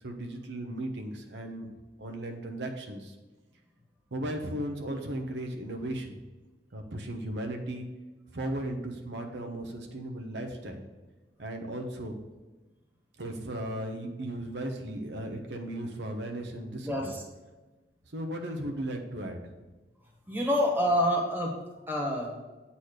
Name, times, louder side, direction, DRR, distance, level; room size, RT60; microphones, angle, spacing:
voice 1, 0.0-1.7 2.0-3.2 4.1-6.2 6.7-7.9 8.3-10.9 11.4-12.1 13.2-17.1 18.1-19.4, right 1 dB, 85° right, 3 dB, 1.0 m, -36 dB
voice 2, 16.8-17.2 20.3-21.6 21.9-22.4, equal, 10° right, -1 dB, 1.5 m, -27 dB
8.3 x 4.2 x 6.5 m, 1.2 s
head